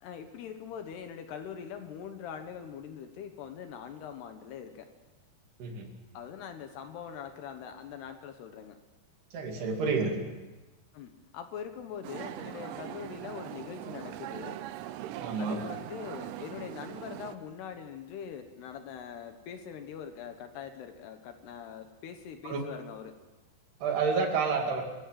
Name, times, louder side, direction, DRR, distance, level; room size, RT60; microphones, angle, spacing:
voice 1, 0.0-4.9 6.1-8.8 10.9-14.6 15.4-23.2, left 8 dB, 70° left, 7 dB, 2.9 m, -42 dB
voice 2, 9.3-10.2 15.2-15.6 22.4-22.6 23.8-24.8, right 4 dB, 60° right, 2 dB, 4.4 m, -29 dB
sound 1, 12.0-17.4, right 12 dB, 85° right, 3.3 m, -41 dB
27.0 x 15.0 x 7.6 m, 1.1 s
omnidirectional pair, 5.4 m